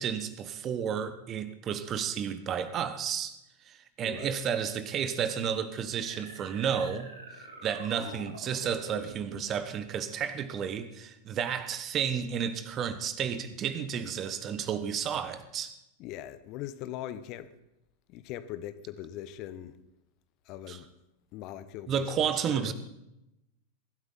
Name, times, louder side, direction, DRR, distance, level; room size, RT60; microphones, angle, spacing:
voice 1, 0.0-3.4 3.6-7.1 7.6-15.7 20.7-20.8 21.9-22.7, right 8 dB, 30° right, 1.3 m, -32 dB
voice 2, 4.0-4.4 8.0-8.4 16.0-17.5 18.1-19.8 20.4-20.9 21.3-22.7, left 12 dB, 40° left, 1.0 m, -41 dB
sound 1, 6.1-9.6, right 2 dB, 75° right, 3.3 m, -47 dB
22.5 x 13.0 x 4.1 m
figure-of-eight pair, 90°, 0 cm